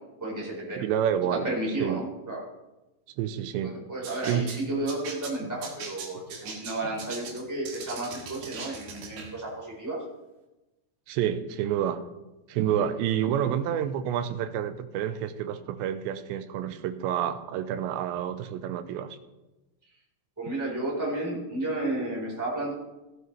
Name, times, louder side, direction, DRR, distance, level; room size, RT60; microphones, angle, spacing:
voice 1, 0.2-0.8 1.4-2.4 3.6-10.0 20.4-22.7, right 2 dB, 5° right, -5 dB, 3.9 m, -32 dB
voice 2, 0.8-1.5 1.8-2.0 3.2-3.8 4.2-4.5 11.1-12.0 12.5-19.2, right 9 dB, 90° right, 10 dB, 3.0 m, -29 dB
sound 1, 4.0-9.3, right 5 dB, 65° right, 3.4 m, -40 dB
16.0 x 11.0 x 3.4 m, 1.0 s
omnidirectional pair, 5.0 m